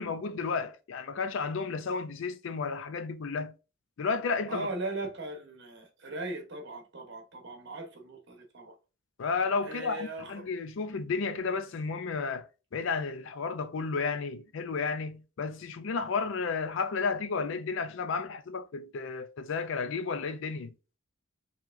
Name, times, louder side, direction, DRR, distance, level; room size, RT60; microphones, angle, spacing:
voice 1, 0.0-3.5 4.0-4.7 9.2-12.5 12.7-20.7, left 4 dB, 60° left, 0.4 m, -32 dB
voice 2, 4.5-8.7 9.6-10.5, right 2 dB, 50° right, 0.9 m, -38 dB
4.6 x 2.8 x 2.5 m
head